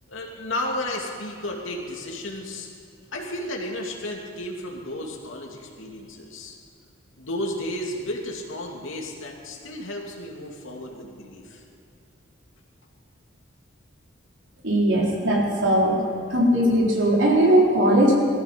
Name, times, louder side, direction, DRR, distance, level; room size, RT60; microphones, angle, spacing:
voice 1, 0.1-2.7 3.1-6.6 7.2-11.6, left 1 dB, 80° left, 0 dB, 2.7 m, -33 dB
voice 2, 14.6-16.0 16.3-18.2, right 1 dB, 70° right, -3 dB, 3.7 m, -19 dB
19.0 x 14.0 x 5.3 m, 2.7 s
head